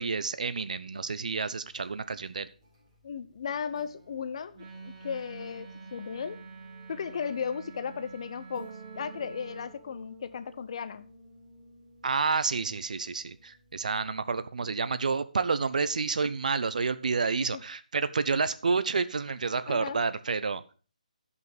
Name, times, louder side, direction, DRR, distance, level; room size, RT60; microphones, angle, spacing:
voice 1, 0.0-2.5 12.0-20.6, right 4 dB, 65° right, 0.8 m, -29 dB
sound 1, 1.6-14.2, right 2 dB, 25° right, 3.8 m, -53 dB
voice 2, 3.0-6.4 6.9-11.1 17.5-17.6 19.7-20.0, left 6 dB, 45° left, 0.7 m, -36 dB
Wind instrument woodwind instrument, 4.5-9.8, right 4 dB, 40° right, 3.2 m, -47 dB
12.0 x 5.5 x 4.9 m
figure-of-eight pair, 155°, 4 cm